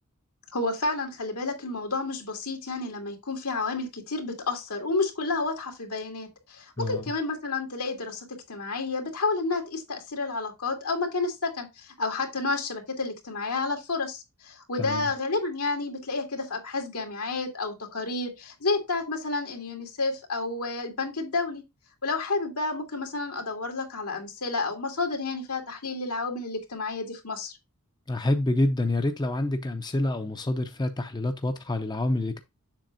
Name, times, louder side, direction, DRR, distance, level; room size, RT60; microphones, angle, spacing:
voice 1, 0.5-21.6 22.0-27.6, left 3 dB, 85° left, 2.3 m, -30 dB
voice 2, 14.8-15.1 28.1-32.4, left 1 dB, 20° left, 0.6 m, -27 dB
7.5 x 6.2 x 2.6 m
head